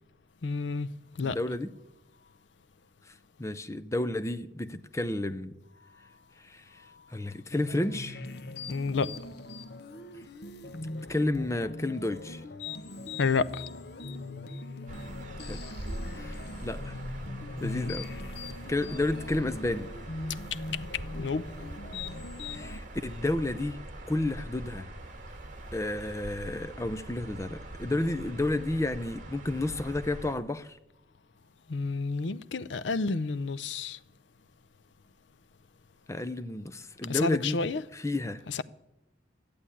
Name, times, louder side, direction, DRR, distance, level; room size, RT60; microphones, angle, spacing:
voice 1, 0.4-0.9 1.2-1.4 8.7-9.1 13.2-13.5 17.6-17.9 20.5-20.6 21.2-21.4 31.7-34.0 37.1-37.8 38.5-38.6, left 4 dB, 75° left, 0.6 m, -30 dB
voice 2, 1.2-1.7 3.4-5.5 6.4-6.6 7.1-8.2 11.1-12.4 15.5-15.6 16.2-16.3 16.6-17.0 17.6-18.1 18.7-19.9 22.5-23.8 24.1-24.9 25.7-30.8 36.1-37.6 37.9-38.4, left 2 dB, 15° left, 0.5 m, -31 dB
sound 1, 7.5-22.8, left 2 dB, 60° left, 0.9 m, -41 dB
sound 2, 14.9-30.4, right 1 dB, 40° right, 1.9 m, -42 dB
13.5 x 8.6 x 9.9 m
head